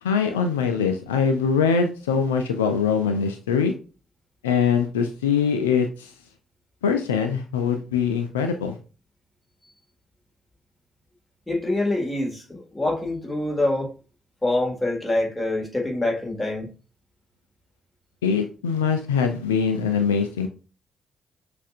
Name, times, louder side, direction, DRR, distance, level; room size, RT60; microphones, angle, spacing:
voice 1, 0.0-3.7 4.4-6.1 6.8-8.8 18.2-20.5, left 6 dB, 80° left, 0.4 m, -23 dB
voice 2, 11.5-13.9 14.4-16.7, left 2 dB, 15° left, 1.8 m, -25 dB
6.2 x 2.5 x 2.4 m
figure-of-eight pair, 40°, 0 cm